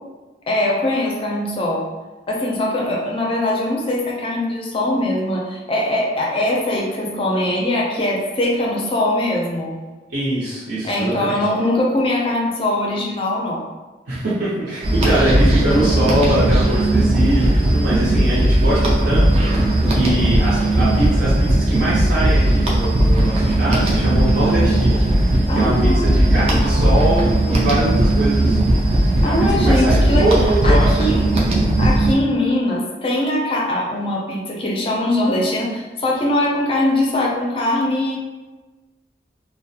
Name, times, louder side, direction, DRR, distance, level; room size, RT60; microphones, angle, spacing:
voice 1, 0.5-1.9 2.3-9.8 10.8-13.7 15.0-15.2 25.5-26.8 29.2-30.3 30.6-31.2 31.8-38.2, left 1 dB, 30° left, -2 dB, 0.4 m, -21 dB
voice 2, 10.1-11.4 14.1-28.7 29.2-29.3 29.6-31.5, right 1 dB, 75° right, -11 dB, 0.7 m, -23 dB
sound 1, 14.8-32.1, right 1 dB, 35° right, 0.4 m, -17 dB
2.4 x 2.1 x 2.7 m, 1.2 s
head